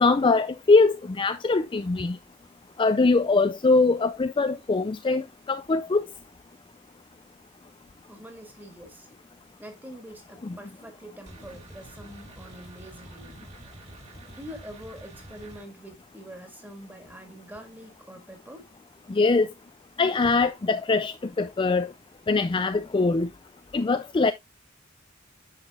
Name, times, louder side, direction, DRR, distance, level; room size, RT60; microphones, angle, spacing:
voice 1, 0.0-2.2 2.8-5.2 5.5-6.0 19.2-19.5 20.0-21.9 22.3-23.3 23.7-24.3, left 3 dB, 25° left, 0.4 m, -22 dB
voice 2, 8.1-9.1 9.6-13.5 14.3-18.7, equal, 10° right, 1.9 m, -45 dB
sound 1, 11.3-15.6, right 2 dB, 35° right, 2.5 m, -47 dB
9.9 x 5.7 x 2.4 m
head